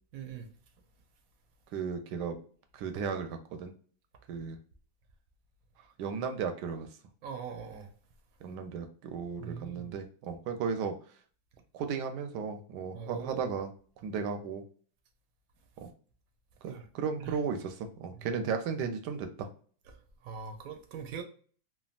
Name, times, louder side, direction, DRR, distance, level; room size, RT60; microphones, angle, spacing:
voice 1, 0.1-0.5 7.2-7.9 9.4-9.9 12.9-13.5 16.6-16.9 17.2-17.4 18.1-18.4 20.2-21.2, right 6 dB, 70° right, 0.9 m, -42 dB
voice 2, 1.7-2.4 2.7-3.7 4.3-4.6 6.0-6.9 8.4-10.9 11.7-13.7 14.0-14.6 15.8-15.9 16.6-19.5, right 6 dB, 90° right, 1.2 m, -35 dB
3.4 x 2.3 x 2.3 m
omnidirectional pair, 1.8 m